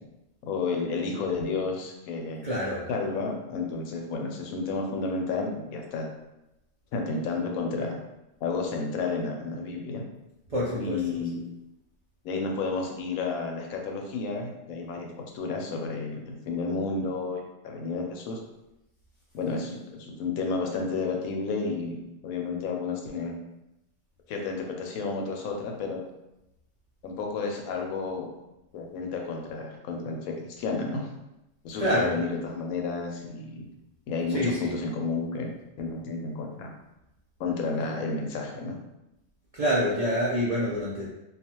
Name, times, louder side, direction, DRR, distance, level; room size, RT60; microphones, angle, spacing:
voice 1, 0.5-2.5 2.9-6.1 6.9-8.0 8.4-10.0 10.8-11.4 12.2-15.1 15.3-18.4 19.3-23.4 24.3-26.0 27.0-28.3 28.7-31.1 31.6-33.6 34.1-35.5 35.8-36.7 37.4-38.7, left 4 dB, 85° left, 1 dB, 1.0 m, -31 dB
voice 2, 2.4-2.8 10.5-11.2 31.8-32.2 34.3-34.7 39.5-41.1, equal, 65° right, -8 dB, 0.3 m, -27 dB
2.4 x 2.3 x 2.8 m, 0.92 s
omnidirectional pair, 1.4 m